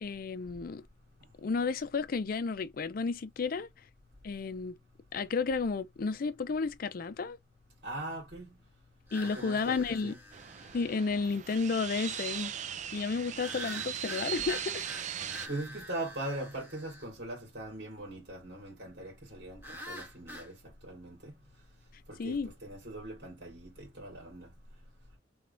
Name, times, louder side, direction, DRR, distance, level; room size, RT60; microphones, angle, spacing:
voice 1, 0.0-0.8 1.4-3.7 4.2-4.8 5.1-7.4 9.1-10.1 10.7-12.5 12.9-14.8 22.2-22.5, left 4 dB, 55° left, 0.5 m, -32 dB
voice 2, 7.8-8.5 9.2-10.2 15.5-20.5 20.8-21.3 22.1-24.5, right 1 dB, 70° right, 2.2 m, -41 dB
sound 1, 9.1-11.1 13.4-17.1 19.6-20.5, left 1 dB, 15° right, 1.4 m, -46 dB
sound 2, 10.3-15.5, right 9 dB, 40° right, 0.4 m, -39 dB
3.4 x 3.4 x 2.6 m
head